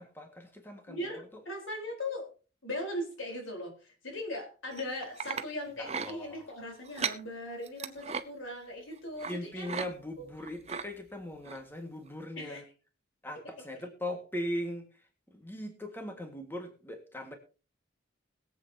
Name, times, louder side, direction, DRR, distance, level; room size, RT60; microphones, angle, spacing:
voice 1, 0.0-1.0 5.8-6.5 9.2-12.6 13.2-14.9 15.3-17.3, left 1 dB, 10° left, 4 dB, 1.7 m, -39 dB
voice 2, 0.9-2.3 2.6-9.8 10.2-10.3 12.4-12.6, left 1 dB, 85° left, 2 dB, 4.1 m, -39 dB
sound 1, 4.7-5.5 5.8-6.1 6.8-7.2 7.7-8.2 9.2-9.4 9.6-9.9 10.2-10.9 11.5-11.6 12.1-12.2, right 6 dB, 35° right, 0.7 m, -36 dB
21.5 x 8.1 x 2.8 m, 0.35 s
head